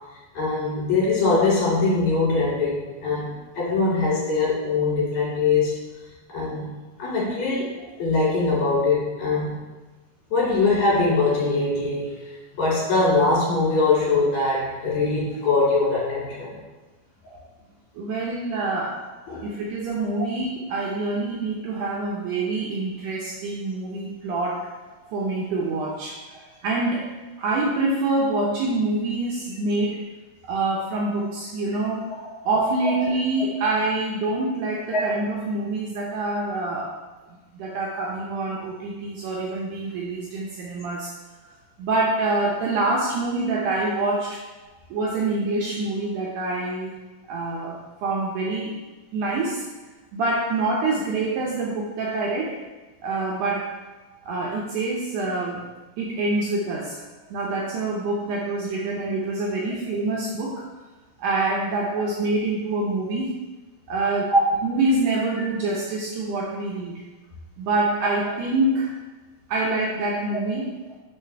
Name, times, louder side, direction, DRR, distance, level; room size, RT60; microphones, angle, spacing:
voice 1, 0.4-3.3 3.6-5.7 6.3-6.7 7.0-7.7 8.0-9.6 10.3-12.1 12.6-16.5 17.2-17.4 19.3-19.4 32.8-32.9 34.9-35.0 64.3-64.4, left 3 dB, 60° left, -7 dB, 3.7 m, -22 dB
voice 2, 18.0-19.0 19.4-24.7 25.1-30.0 30.4-32.1 32.5-36.9 37.5-41.1 41.8-44.4 44.9-47.0 47.3-48.8 49.1-49.6 50.1-52.6 53.0-53.7 54.2-55.6 56.0-60.6 61.2-63.4 63.9-64.3 64.6-67.0 67.6-68.9 69.5-70.7, right 2 dB, 75° right, -3 dB, 2.1 m, -26 dB
7.4 x 5.5 x 3.3 m, 1.2 s
omnidirectional pair, 3.8 m